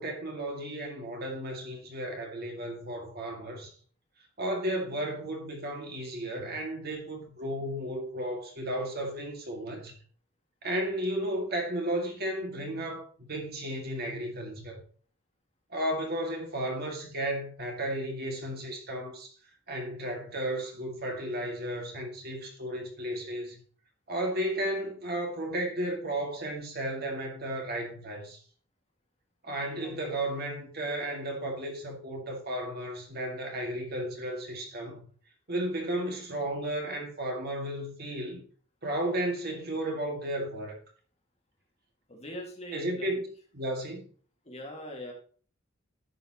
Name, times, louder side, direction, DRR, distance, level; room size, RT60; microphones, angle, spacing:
voice 1, 0.0-3.7 4.4-9.9 10.6-14.8 15.7-19.3 19.7-23.6 24.1-28.4 29.4-35.0 35.5-38.4 38.8-40.8 42.7-43.3 43.5-44.1, right 1 dB, 50° right, 2.1 m, -34 dB
voice 2, 29.8-30.1 42.1-43.2 44.4-45.1, equal, 30° left, 2.1 m, -42 dB
11.0 x 7.2 x 3.0 m
head